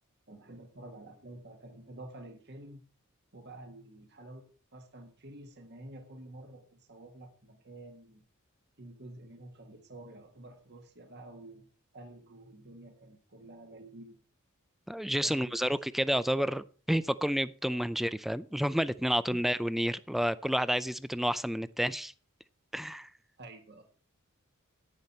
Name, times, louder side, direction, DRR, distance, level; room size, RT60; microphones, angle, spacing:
voice 1, 0.3-2.8 3.3-8.2 8.8-11.7 11.9-14.2 15.2-15.8 19.3-19.4 23.4-23.8, right 1 dB, 50° right, 1.7 m, -49 dB
voice 2, 14.9-22.1 22.7-23.1, equal, ahead, 0.4 m, -30 dB
10.5 x 9.9 x 4.3 m
head